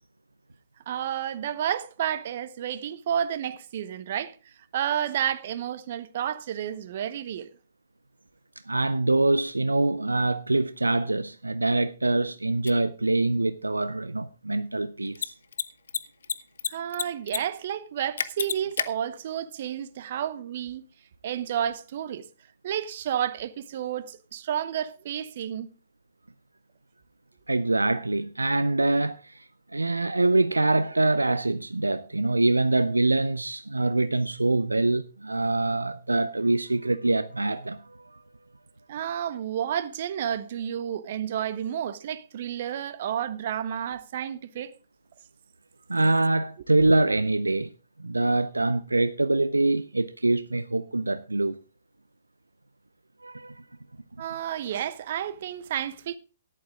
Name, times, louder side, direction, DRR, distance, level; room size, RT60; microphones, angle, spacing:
voice 1, 0.9-4.3 4.7-7.5 16.7-20.8 21.2-22.2 22.6-25.7 38.9-44.7 46.8-46.9 54.2-56.2, right 10 dB, 50° right, 1.0 m, -31 dB
voice 2, 8.7-15.3 27.5-29.4 29.7-38.2 45.9-47.7 48.0-51.6 53.2-53.5, right 2 dB, 85° right, 0.5 m, -24 dB
Mechanisms, 12.7-12.8 15.1-15.3 15.5-15.6 15.9-16.7 16.9-17.4 17.6-17.7 18.2-18.9, left 7 dB, 65° left, 0.8 m, -28 dB
13.5 x 11.0 x 3.6 m
figure-of-eight pair, 120°, 0 cm